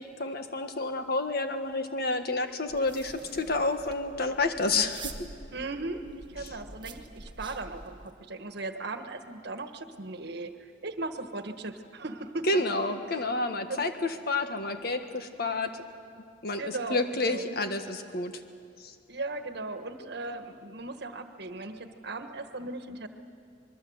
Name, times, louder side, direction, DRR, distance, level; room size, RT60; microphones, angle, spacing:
voice 1, 0.0-5.1 12.5-15.7 16.4-18.3 18.8-18.9, left 2 dB, 55° left, 7 dB, 1.6 m, -29 dB
sound 1, 2.7-8.1, right 3 dB, 25° right, 1.4 m, -46 dB
voice 2, 5.5-12.6 13.1-13.2 13.7-13.8 16.6-17.4 19.1-23.1, right 2 dB, 60° right, 8 dB, 1.4 m, -37 dB
26.0 x 22.0 x 8.0 m, 2.3 s
head